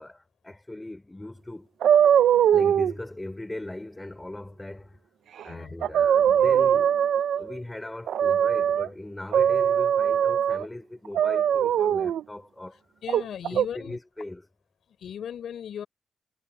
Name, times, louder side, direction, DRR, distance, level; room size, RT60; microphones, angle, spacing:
voice 1, 0.0-1.7 2.5-5.0 5.4-6.9 7.4-12.8 13.5-14.5, left 1 dB, 10° left, 4.0 m, -39 dB
sound 1, 1.8-2.9 5.4-5.5 5.8-7.5 8.1-8.9 9.3-10.6 11.1-12.2 13.1-13.7, right 9 dB, 85° right, 0.6 m, -21 dB
voice 2, 13.0-14.0 15.0-15.9, left 9 dB, 75° left, 5.9 m, -37 dB
wide cardioid pair, 145°, 0 cm